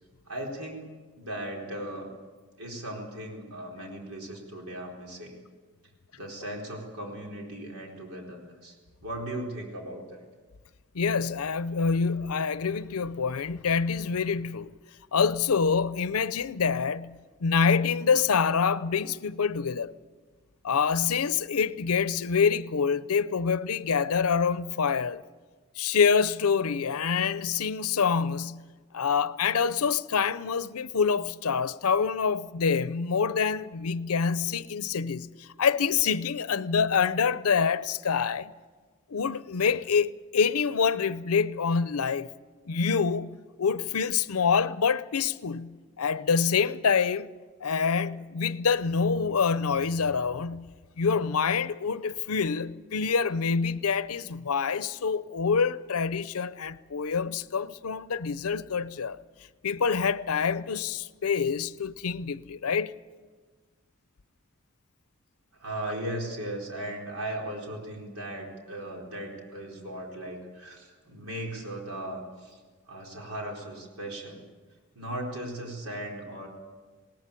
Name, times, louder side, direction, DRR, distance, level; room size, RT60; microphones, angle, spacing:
voice 1, 0.3-0.8 1.2-2.1 2.6-5.4 6.1-8.8 9.0-10.2 65.5-72.6 72.9-74.4 74.9-76.5, right 1 dB, 90° right, 4.3 m, -37 dB
voice 2, 10.9-14.7 15.1-19.9 20.6-25.2 25.8-28.6 28.9-38.5 39.1-42.3 42.7-47.3 47.6-50.7 51.0-59.2 59.6-62.9, left 6 dB, 85° left, 0.6 m, -26 dB
20.0 x 18.5 x 8.3 m
head